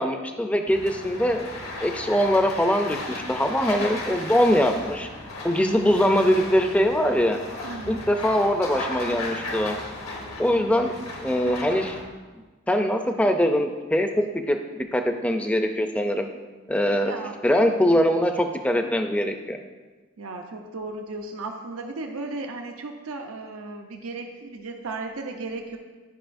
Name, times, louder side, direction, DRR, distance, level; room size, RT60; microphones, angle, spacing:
voice 1, 0.0-1.5 1.8-5.1 5.4-7.4 7.9-9.8 10.4-11.0 11.2-12.0 12.7-16.3 16.7-17.1 17.4-19.6, equal, 5° left, 5 dB, 0.4 m, -22 dB
sound 1, 0.7-12.0, left 2 dB, 85° left, 1.3 m, -35 dB
voice 2, 7.6-8.1 10.6-10.9 16.9-17.4 20.2-25.8, right 3 dB, 85° right, 3 dB, 0.7 m, -35 dB
11.0 x 5.4 x 2.6 m, 1.3 s
head